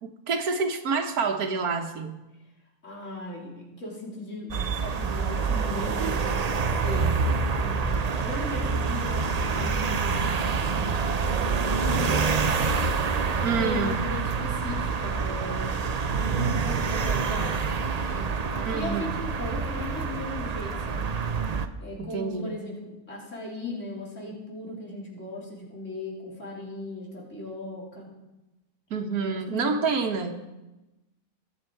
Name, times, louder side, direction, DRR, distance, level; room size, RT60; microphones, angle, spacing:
voice 1, 0.0-2.2 13.4-14.0 18.6-19.0 22.0-22.5 28.9-30.5, right 5 dB, 75° right, 6 dB, 1.6 m, -28 dB
voice 2, 2.8-7.2 7.5-11.0 11.7-12.5 13.3-17.6 18.1-21.1 21.8-28.1 29.2-29.8, left 2 dB, 55° left, -4 dB, 3.7 m, -37 dB
sound 1, 4.5-21.7, right 5 dB, 55° right, 0.4 m, -27 dB
22.0 x 7.4 x 4.6 m, 1.0 s
omnidirectional pair, 1.6 m